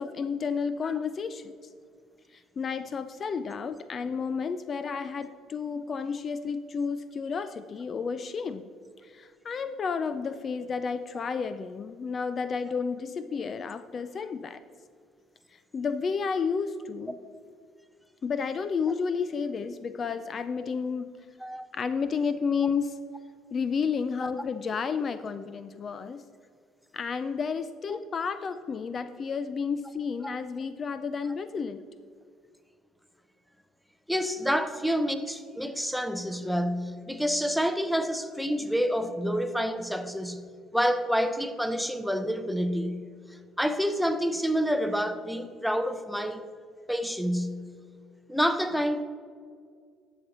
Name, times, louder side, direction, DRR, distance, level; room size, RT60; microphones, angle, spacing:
voice 1, 0.0-1.5 2.3-8.7 9.0-14.6 15.5-17.2 18.2-21.2 21.7-23.0 23.5-26.2 26.9-31.8, left 5 dB, 40° left, 0.4 m, -31 dB
voice 2, 34.1-40.4 40.7-43.1 43.6-46.5 46.9-47.6 48.3-49.0, equal, ahead, 0.7 m, -28 dB
10.5 x 6.7 x 4.2 m
supercardioid pair, 85°, 0 cm